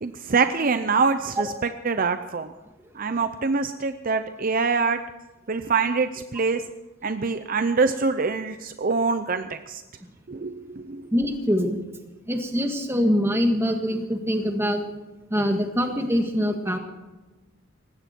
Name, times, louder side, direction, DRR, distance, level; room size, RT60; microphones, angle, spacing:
voice 1, 0.0-2.5 3.0-5.0 5.5-6.6 7.0-9.8 10.3-11.0, right 4 dB, 45° right, 10 dB, 0.6 m, -25 dB
voice 2, 11.1-11.8 12.3-14.8 15.3-16.8, equal, 10° right, 4 dB, 1.7 m, -24 dB
19.0 x 16.0 x 4.5 m, 1.1 s
head